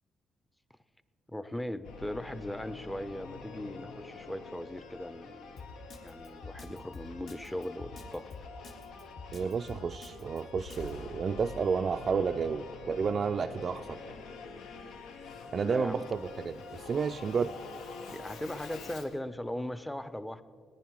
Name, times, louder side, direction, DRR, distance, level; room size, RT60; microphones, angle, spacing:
voice 1, 1.3-5.6 6.0-8.3 15.5-16.1 18.1-20.4, left 1 dB, 10° left, 13 dB, 0.6 m, -39 dB
Singing / Musical instrument, 1.8-19.2, left 4 dB, 85° left, 0.8 m, -46 dB
Drum kit, 5.6-10.9, left 4 dB, 60° left, 1.8 m, -46 dB
voice 2, 9.3-14.1 15.5-17.5, right 5 dB, 45° right, 5 dB, 0.3 m, -31 dB
18.0 x 10.0 x 4.7 m, 2.2 s
cardioid pair, 90°, 0 cm